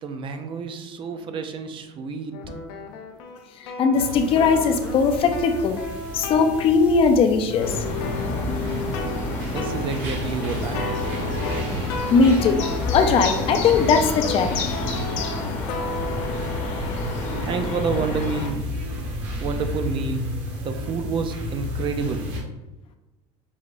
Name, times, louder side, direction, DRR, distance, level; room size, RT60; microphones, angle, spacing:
voice 1, 0.0-2.4 9.5-11.6 17.5-18.6 19.4-20.2 20.6-22.2, right 5 dB, 40° right, 7 dB, 0.5 m, -29 dB
sound 1, 2.3-9.2 9.5-9.8 10.4-19.5, left 3 dB, 90° left, 0.6 m, -35 dB
voice 2, 3.6-5.8 6.1-7.8 12.1-12.6 12.9-14.5, left 5 dB, 45° left, 6 dB, 0.5 m, -19 dB
sound 2, 3.9-22.4, left 1 dB, 80° right, 1.4 m, -33 dB
sound 3, 7.6-18.5, left 2 dB, 65° left, 0.8 m, -29 dB
5.5 x 3.1 x 2.5 m, 1.0 s
cardioid pair, 125°, 13 cm